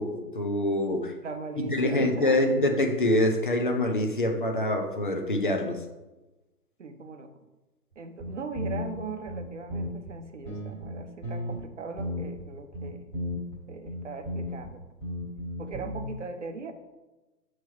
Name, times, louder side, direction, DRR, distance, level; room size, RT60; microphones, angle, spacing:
voice 1, 0.0-1.2 1.6-5.8, left 1 dB, 35° left, 4 dB, 0.6 m, -25 dB
voice 2, 1.2-2.5 6.8-7.3 8.0-13.1 13.7-14.8 15.6-16.7, right 4 dB, 50° right, 7 dB, 0.7 m, -39 dB
sound 1, 7.9-8.0 8.2-10.1 10.4-11.6 12.0-12.4 12.7-13.6 13.8-14.7 15.0-16.1, left 1 dB, 15° left, 1.4 m, -34 dB
6.8 x 3.2 x 4.6 m, 1.1 s
figure-of-eight pair, 145°, 48 cm